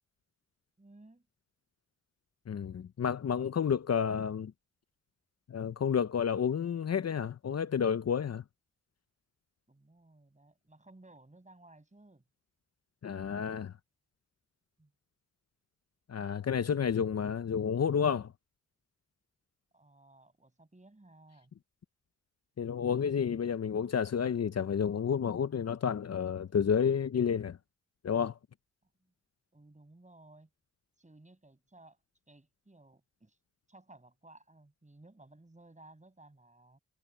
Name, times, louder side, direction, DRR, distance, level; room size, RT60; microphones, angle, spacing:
voice 1, 0.8-1.3 9.7-12.2 14.8-14.9 19.7-21.5 29.0-29.1 29.5-30.5 31.0-32.0 32.3-33.4 33.7-36.8, right 2 dB, 25° right, 6.6 m, -58 dB
voice 2, 2.5-4.5 5.5-8.4 13.0-13.7 16.1-18.3 22.6-27.6 28.0-28.3, left 7 dB, 55° left, 0.8 m, -30 dB
cardioid pair, 45°, 30 cm